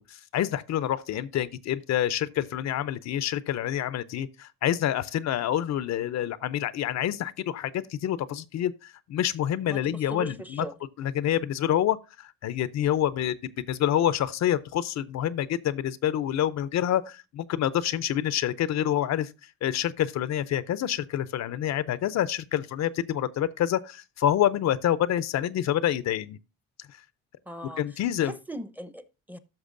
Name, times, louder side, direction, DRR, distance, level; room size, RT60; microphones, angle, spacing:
voice 1, 0.0-10.7 11.0-13.4 13.7-19.3 19.6-26.4 27.8-28.3, left 11 dB, 65° left, 0.5 m, -27 dB
voice 2, 9.7-10.7 27.5-27.8 28.2-29.4, right 1 dB, 5° right, 0.7 m, -39 dB
13.5 x 6.1 x 2.5 m
cardioid pair, 90°, 30 cm